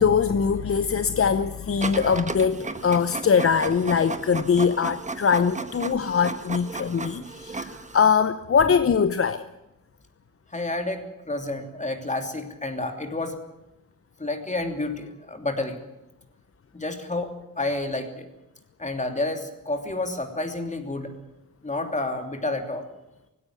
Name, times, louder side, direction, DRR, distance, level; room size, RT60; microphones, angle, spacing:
voice 1, 0.0-9.4, left 6 dB, 45° left, 0.8 m, -22 dB
Printer, 1.8-8.1, right 3 dB, 20° right, 1.4 m, -34 dB
voice 2, 10.5-13.4 14.2-15.8 16.7-18.3 18.8-21.1 21.6-22.9, left 2 dB, 20° left, 3.0 m, -30 dB
18.5 x 16.5 x 9.6 m
wide cardioid pair, 110°, 32 cm